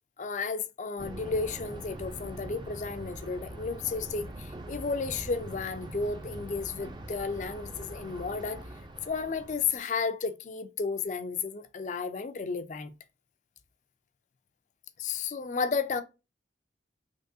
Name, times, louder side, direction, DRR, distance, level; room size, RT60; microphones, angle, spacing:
voice 1, 0.2-8.6 9.0-12.9 15.0-16.0, left 4 dB, 40° left, 0.4 m, -33 dB
Thunder, 1.0-9.8, right 1 dB, 25° right, 0.4 m, -43 dB
3.6 x 3.0 x 2.7 m
head